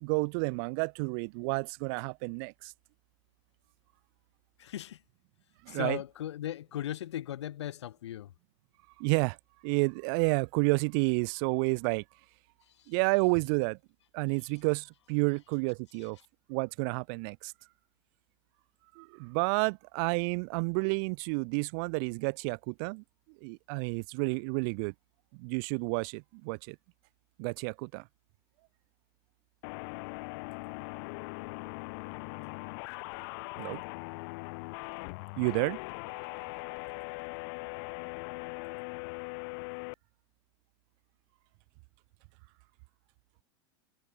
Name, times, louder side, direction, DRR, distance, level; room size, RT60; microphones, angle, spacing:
voice 1, 0.0-2.7 5.6-6.0 9.0-9.4 9.6-12.0 12.9-13.8 14.1-16.2 16.5-17.5 19.0-23.0 23.4-24.9 25.3-26.8 27.4-28.0 33.6-33.8 35.4-35.8, right 36 dB, 55° right, 0.5 m, -30 dB
voice 2, 4.6-5.0 5.7-8.3, left 12 dB, 85° left, 3.3 m, -37 dB
sound 1, 29.6-39.9, left 29 dB, 60° left, 1.1 m, -40 dB
supercardioid pair, 115°, 14 cm